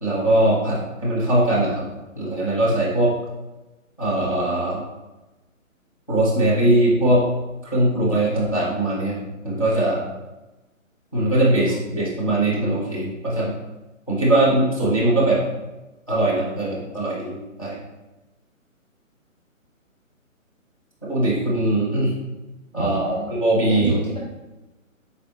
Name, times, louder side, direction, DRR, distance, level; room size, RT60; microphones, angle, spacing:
voice 1, 0.0-1.8 2.2-3.1 4.0-4.8 6.1-7.2 7.6-10.0 11.1-13.5 14.1-15.4 16.1-17.8 21.0-22.1 22.7-23.9, right 1 dB, 25° left, -8 dB, 0.5 m, -21 dB
voice 2, 22.8-23.3 23.7-24.2, right 1 dB, 30° right, -3 dB, 0.6 m, -33 dB
3.8 x 2.7 x 3.1 m, 1.0 s
hypercardioid pair, 175°, 41 cm